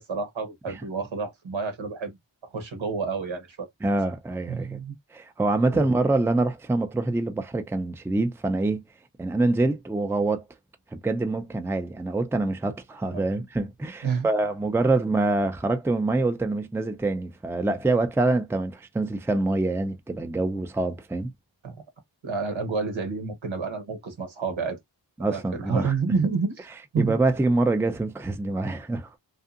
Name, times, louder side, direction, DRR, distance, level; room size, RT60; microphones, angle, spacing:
voice 1, 0.0-2.2 2.4-3.7 4.5-5.0 5.7-5.9 13.1-13.2 14.0-14.3 21.6-21.7 22.2-24.8 25.3-26.6 26.9-27.1, right 5 dB, 75° right, 1.1 m, -29 dB
voice 2, 3.8-4.8 5.1-8.8 9.2-10.4 10.9-21.3 25.2-25.9 27.0-29.1, right 2 dB, 5° right, 0.5 m, -25 dB
2.7 x 2.4 x 2.4 m
cardioid pair, 40°, 48 cm